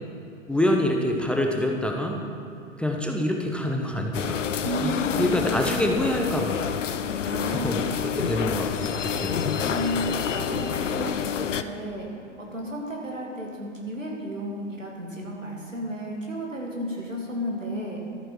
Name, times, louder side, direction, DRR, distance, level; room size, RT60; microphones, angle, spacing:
voice 1, 0.5-2.2 2.8-4.4 4.8-4.9 5.2-6.6 7.6-8.7 9.2-9.5, left 1 dB, 5° left, 1 dB, 0.6 m, -25 dB
sound 1, 4.1-11.6, left 8 dB, 75° left, 0.6 m, -28 dB
voice 2, 4.6-5.4 7.3-7.7 9.7-12.1 12.4-18.0, equal, 85° right, -2 dB, 2.3 m, -32 dB
13.0 x 8.9 x 4.6 m, 2.7 s
figure-of-eight pair, 95°, 37 cm